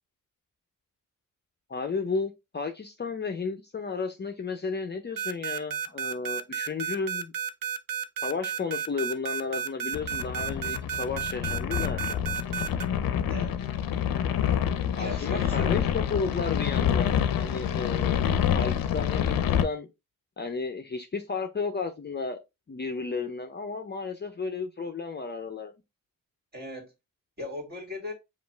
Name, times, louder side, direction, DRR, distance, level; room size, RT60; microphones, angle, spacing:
voice 1, 1.7-7.3 8.2-12.3 15.0-18.3 18.5-19.9 20.4-22.4 22.7-25.7, left 4 dB, 30° left, 0.6 m, -33 dB
sound 1, 5.2-12.8, right 8 dB, 75° right, 0.6 m, -32 dB
sound 2, 9.9-19.6, left 9 dB, 85° left, 0.6 m, -27 dB
voice 2, 13.3-13.7 15.0-15.8 26.5-26.9 27.4-28.1, left 1 dB, 30° right, 2.3 m, -38 dB
5.1 x 2.5 x 3.3 m
cardioid pair, 90°, 34 cm